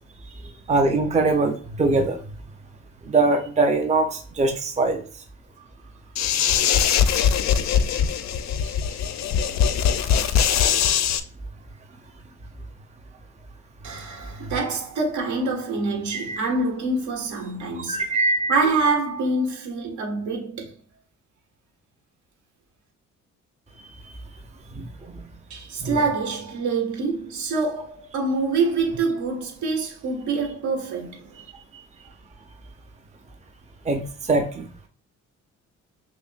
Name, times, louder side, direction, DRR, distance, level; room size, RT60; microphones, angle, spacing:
voice 1, 0.7-2.2 3.1-5.0 16.3-16.4 17.9-18.6 24.7-24.8 25.8-26.0 33.9-34.0 34.3-34.9, right 3 dB, 25° right, 0.7 m, -22 dB
sound 1, 6.2-11.2, left 8 dB, 65° left, 0.5 m, -21 dB
voice 2, 13.8-18.0 18.5-20.7 25.5-31.3, right 3 dB, 75° right, 1.7 m, -26 dB
6.1 x 2.1 x 2.5 m
cardioid pair, 90°, 30 cm